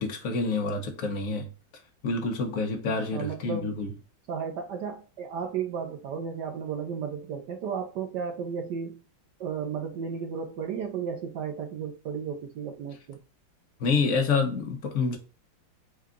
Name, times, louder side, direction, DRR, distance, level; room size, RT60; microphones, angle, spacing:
voice 1, 0.0-1.5 2.0-3.9 13.8-15.2, left 4 dB, 55° left, 1.0 m, -27 dB
voice 2, 2.9-3.8 4.3-9.0 9.4-13.2, right 6 dB, 70° right, 1.1 m, -34 dB
4.7 x 2.3 x 3.6 m
omnidirectional pair, 2.2 m